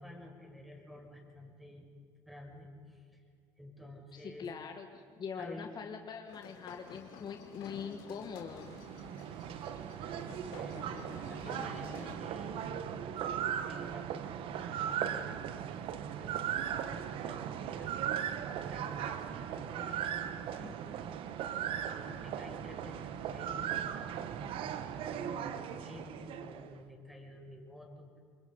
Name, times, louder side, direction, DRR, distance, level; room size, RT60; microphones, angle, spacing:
voice 1, 0.0-1.9 2.3-3.2 3.6-4.5 5.4-5.7 10.2-12.9 13.7-20.8 21.2-21.5 21.8-28.2, left 1 dB, ahead, 2 dB, 5.5 m, -51 dB
voice 2, 4.1-8.7, left 6 dB, 45° left, 5 dB, 1.5 m, -43 dB
sound 1, 6.3-12.2, left 6 dB, 85° left, 3.2 m, -51 dB
sound 2, 8.3-26.7, right 9 dB, 65° right, 1.2 m, -38 dB
27.5 x 22.0 x 5.5 m, 2.1 s
supercardioid pair, 80°, 10 cm